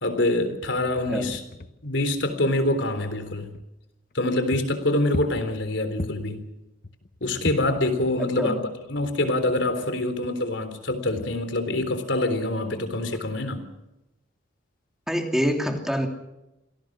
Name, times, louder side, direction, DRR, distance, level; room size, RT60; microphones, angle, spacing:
voice 1, 0.0-1.4 1.8-3.5 4.1-6.4 7.2-13.7, left 1 dB, 70° left, 9 dB, 3.7 m, -25 dB
sound 1, 0.6-3.7 4.1-4.2 4.5-6.4 6.8-8.6 8.8-10.3 10.9-12.1, left 1 dB, 45° left, 1.0 m, -39 dB
voice 2, 15.1-16.1, equal, ahead, 3 dB, 2.9 m, -25 dB
26.5 x 18.0 x 6.2 m, 0.94 s
head